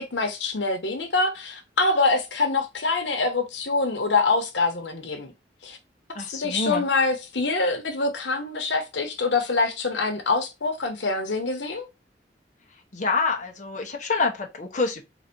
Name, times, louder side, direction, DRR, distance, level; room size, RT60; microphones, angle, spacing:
voice 1, 0.0-5.3 5.6-5.8 6.1-11.9, left 3 dB, 90° left, 1.0 m, -25 dB
voice 2, 6.1-6.8 12.9-15.0, left 4 dB, 45° left, 0.9 m, -26 dB
4.0 x 2.6 x 4.4 m
head